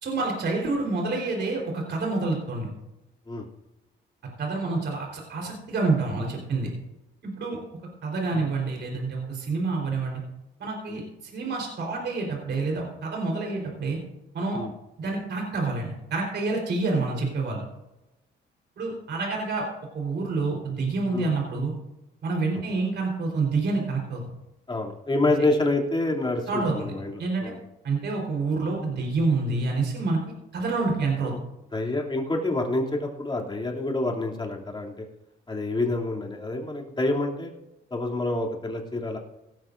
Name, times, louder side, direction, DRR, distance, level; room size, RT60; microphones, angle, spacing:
voice 1, 0.0-2.7 4.4-6.7 7.2-7.6 8.0-10.2 10.6-14.0 14.3-14.6 15.0-17.6 18.8-19.7 19.9-21.7 22.2-24.2 26.5-26.9 27.2-27.5 27.8-30.2 30.5-31.3, right 3 dB, 60° right, 0 dB, 4.1 m, -27 dB
voice 2, 24.7-27.1 27.4-27.5 31.2-31.4 31.7-35.0 35.5-37.5 37.9-39.2, left 2 dB, 25° left, -1 dB, 2.9 m, -27 dB
17.5 x 13.0 x 2.6 m, 0.93 s
cardioid pair, 90°, 20 cm